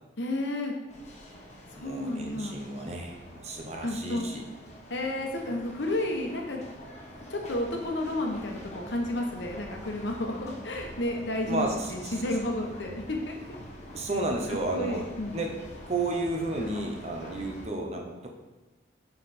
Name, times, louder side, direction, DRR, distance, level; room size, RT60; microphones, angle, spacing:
voice 1, 0.2-0.7 1.7-2.5 3.8-4.2 4.9-6.7 7.3-8.6 8.9-13.3 14.7-15.4, left 1 dB, 70° left, 2 dB, 1.1 m, -31 dB
sound 1, 0.9-17.7, left 1 dB, 35° left, 1.2 m, -45 dB
voice 2, 1.8-4.4 5.5-5.6 11.3-12.2 13.9-15.1 15.3-15.5 15.9-18.3, right 2 dB, 35° right, 1 dB, 0.9 m, -32 dB
5.7 x 5.6 x 4.3 m, 1.2 s
head